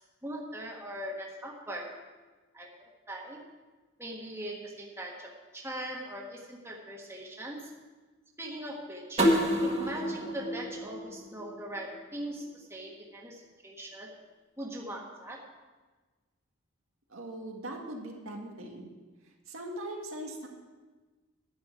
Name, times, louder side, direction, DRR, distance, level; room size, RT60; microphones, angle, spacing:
voice 1, 0.0-1.9 2.5-2.7 3.1-3.4 4.0-7.7 8.4-9.2 9.6-14.1 14.6-15.4, right 1 dB, 10° right, -2 dB, 1.6 m, -40 dB
sound 1, 9.2-12.0, equal, 30° right, 1.7 m, -29 dB
voice 2, 17.1-18.9 19.2-20.5, right 1 dB, 85° right, 0 dB, 2.0 m, -40 dB
11.0 x 6.8 x 9.0 m, 1.3 s
head